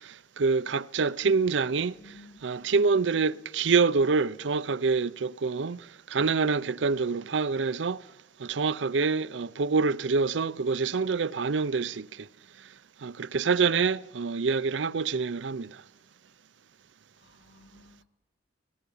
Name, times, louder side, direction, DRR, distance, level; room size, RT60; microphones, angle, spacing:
voice 1, 0.0-1.9 2.4-8.0 8.4-12.3 13.0-15.8, right 4 dB, 90° right, 0.6 m, -26 dB
voice 2, 1.9-2.7 17.2-18.0, left 1 dB, 65° left, 3.7 m, -55 dB
18.0 x 18.0 x 8.6 m
head